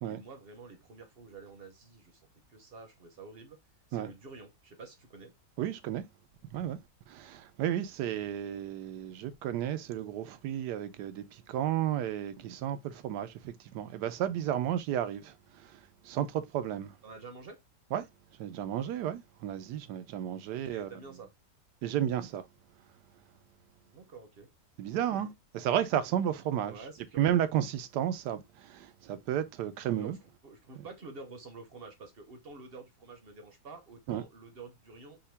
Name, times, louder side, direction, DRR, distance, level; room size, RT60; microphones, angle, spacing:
voice 1, 0.1-2.2 2.5-3.6 3.9-5.3 17.0-17.6 20.5-21.3 23.8-24.5 24.8-25.2 26.6-27.4 30.0-30.2 30.4-35.2, right 4 dB, 45° right, 0.8 m, -49 dB
voice 2, 5.6-6.0 6.5-6.8 7.1-17.0 17.9-18.1 18.4-20.9 21.8-22.5 24.8-26.8 27.2-30.2 30.8-30.9 34.1-34.2, right 10 dB, 80° right, 1.2 m, -33 dB
5.6 x 2.3 x 3.3 m
omnidirectional pair, 1.8 m